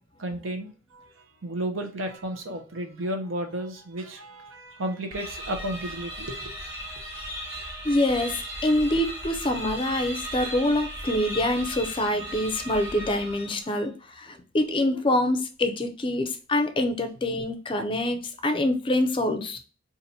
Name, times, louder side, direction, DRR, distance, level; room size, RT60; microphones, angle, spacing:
voice 1, 0.2-7.6, right 1 dB, 90° right, 5 dB, 0.7 m, -34 dB
sound 1, 5.1-13.8, right 1 dB, 15° right, 1.2 m, -36 dB
voice 2, 7.8-19.6, left 1 dB, 25° left, 7 dB, 0.4 m, -25 dB
2.8 x 2.5 x 4.1 m, 0.36 s
head